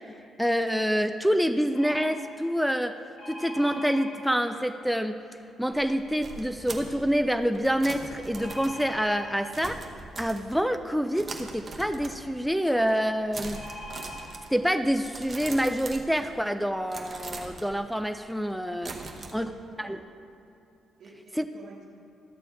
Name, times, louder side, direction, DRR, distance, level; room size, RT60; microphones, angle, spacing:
voice 1, 0.4-3.0 3.3-5.2 5.6-9.9 10.2-13.6 14.5-18.9 19.3-19.5 19.8-20.0 21.4-21.5, equal, ahead, 7 dB, 0.3 m, -27 dB
sound 1, 1.7-2.0 3.2-4.1 8.4-9.2 13.5-14.2 15.0-15.1 15.4-15.6, left 1 dB, 80° left, 2.4 m, -41 dB
sound 2, 5.7-10.8 11.2-12.5 12.8-13.1 13.3-16.5 16.9-19.3, right 3 dB, 35° right, 1.0 m, -42 dB
voice 2, 18.9-20.1 21.0-21.9, right 3 dB, 55° right, -5 dB, 1.2 m, -49 dB
11.5 x 6.8 x 4.6 m, 2.7 s
cardioid pair, 90°, 0 cm